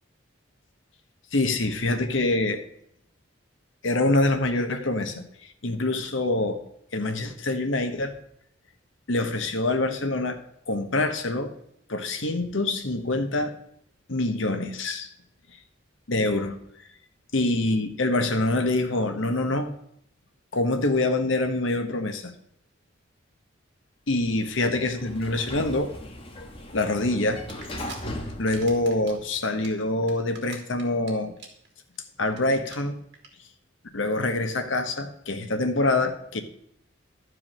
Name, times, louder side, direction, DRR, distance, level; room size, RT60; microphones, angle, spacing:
voice 1, 1.3-2.6 3.8-6.6 6.9-8.2 9.1-10.4 10.7-11.5 11.9-13.5 14.1-15.1 16.1-16.6 17.3-19.7 20.5-22.3 24.1-25.9 26.7-27.4 28.4-31.3 32.2-33.0 33.9-36.4, left 2 dB, 75° left, 6 dB, 1.3 m, -25 dB
Sliding door, 24.3-29.5, left 1 dB, 30° left, 1.5 m, -39 dB
sound 1, 27.5-28.0 28.3-29.2 29.5-31.1 31.4-31.7 31.9-32.0 32.3-32.4 32.6-32.8 33.1-33.3, right 5 dB, 60° right, 2.2 m, -43 dB
12.5 x 4.8 x 6.1 m, 0.73 s
head